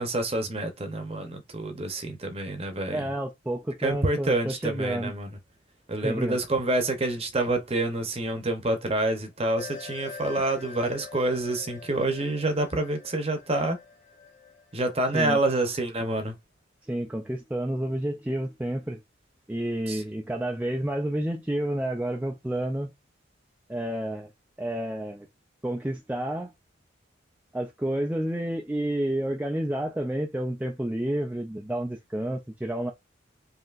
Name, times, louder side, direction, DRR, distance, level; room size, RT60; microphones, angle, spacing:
voice 1, 0.0-3.0 3.8-5.3 5.9-13.8 14.7-16.4 19.9-20.0, right 2 dB, 30° right, 0.8 m, -27 dB
voice 2, 2.9-5.1 6.0-6.4 15.1-15.4 16.8-19.0 19.5-22.9 23.7-24.3 24.6-25.3 25.6-26.5 27.5-32.9, right 1 dB, 5° right, 0.3 m, -30 dB
sound 1, 9.6-15.3, left 6 dB, 50° left, 1.4 m, -44 dB
5.3 x 2.8 x 2.5 m
head